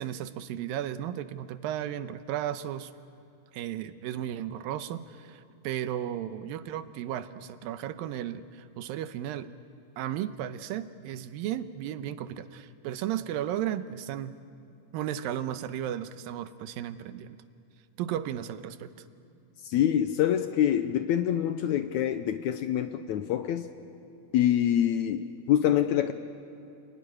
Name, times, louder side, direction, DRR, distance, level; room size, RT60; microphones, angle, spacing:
voice 1, 0.0-2.9 3.5-9.5 10.0-14.4 14.9-17.4 18.0-18.9, right 11 dB, 90° right, 12 dB, 2.6 m, -34 dB
voice 2, 19.7-23.7 24.3-26.1, left 10 dB, 75° left, 9 dB, 1.8 m, -25 dB
28.5 x 19.0 x 10.0 m, 2.7 s
omnidirectional pair, 4.0 m